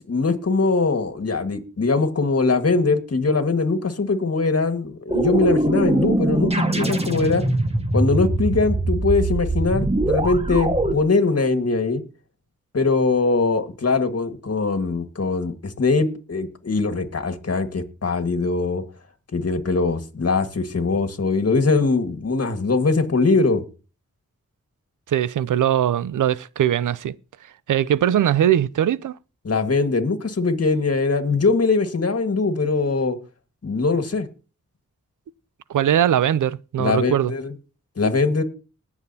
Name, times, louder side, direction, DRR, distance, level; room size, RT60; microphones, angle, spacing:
voice 1, 0.0-7.5 7.9-12.0 12.7-18.8 19.3-23.6 29.4-33.2 33.6-34.3 36.8-37.5 38.0-38.4, left 3 dB, 55° left, 1.8 m, -21 dB
sound 1, 5.1-10.9, right 2 dB, 20° right, 1.5 m, -22 dB
voice 2, 25.1-27.2 27.7-29.2 35.7-37.3, right 10 dB, 90° right, 0.5 m, -20 dB
20.5 x 7.1 x 2.8 m
cardioid pair, 50°, 30 cm